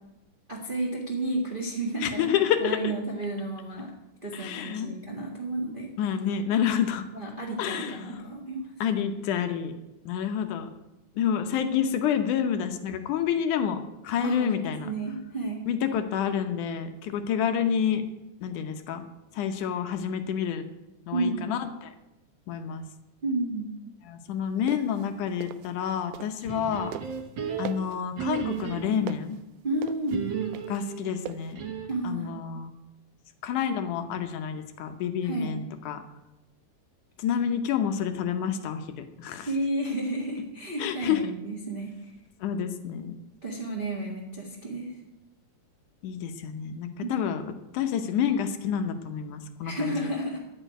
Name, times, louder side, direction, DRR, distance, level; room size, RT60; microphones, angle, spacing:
voice 1, 0.5-3.9 4.2-5.9 7.1-8.7 14.2-14.5 14.8-15.6 21.1-21.5 23.2-23.7 29.6-30.2 31.9-32.3 35.2-35.5 39.4-41.9 43.4-45.0 47.0-47.3 49.6-50.4, right 2 dB, 25° right, -2 dB, 1.2 m, -31 dB
voice 2, 2.0-2.9 4.3-4.9 6.0-7.1 7.6-8.2 8.8-9.7 10.1-10.7 11.2-14.9 15.7-18.0 18.4-19.0 19.3-20.6 21.1-21.9 22.5-22.8 24.1-26.9 27.6-29.4 30.7-31.6 32.0-32.7 33.4-36.0 37.2-38.8 39.2-39.5 40.8-41.3 42.4-43.1 46.0-50.1, left 8 dB, 80° left, 7 dB, 2.4 m, -28 dB
sound 1, 24.5-26.6 26.9-31.5, right 13 dB, 80° right, 1.9 m, -42 dB
sound 2, 26.4-29.2 30.1-32.1, right 7 dB, 50° right, 1.4 m, -34 dB
13.5 x 5.6 x 9.1 m, 0.98 s
omnidirectional pair, 3.6 m